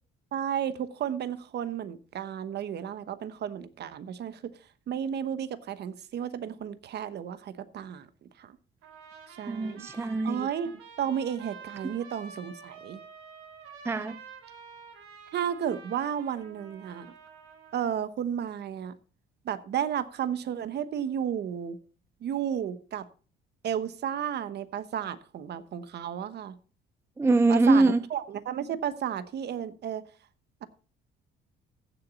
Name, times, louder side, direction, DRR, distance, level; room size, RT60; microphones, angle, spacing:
voice 1, 0.3-4.5 4.9-8.1 8.4-8.6 9.3-9.9 10.2-10.7 11.0-13.0 15.3-17.1 17.7-18.9 19.4-21.8 22.2-23.1 23.6-26.6 27.5-30.0, right 9 dB, 55° right, 1.0 m, -33 dB
Trumpet, 8.8-17.9, right 5 dB, 90° right, 3.4 m, -49 dB
voice 2, 9.5-10.5 13.8-14.2 27.2-28.0, right 3 dB, 10° right, 0.5 m, -23 dB
15.5 x 7.1 x 3.9 m
cardioid pair, 125°, 21 cm